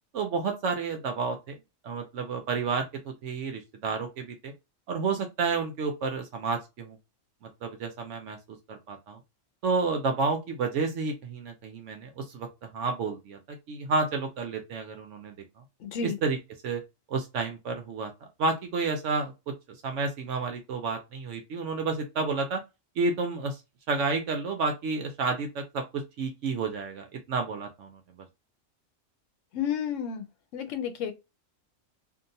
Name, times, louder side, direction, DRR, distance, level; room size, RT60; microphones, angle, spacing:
voice 1, 0.1-1.5 1.8-4.5 4.9-7.0 7.4-9.2 9.6-12.5 12.7-13.4 13.7-15.4 16.0-16.4 16.6-16.8 17.1-18.1 18.4-19.5 19.8-22.6 23.0-23.6 23.9-28.0, right 4 dB, 70° right, 0.9 m, -30 dB
voice 2, 15.8-16.2 29.5-30.2 30.5-31.1, left 7 dB, 70° left, 1.0 m, -31 dB
2.8 x 2.5 x 2.6 m
omnidirectional pair, 1.4 m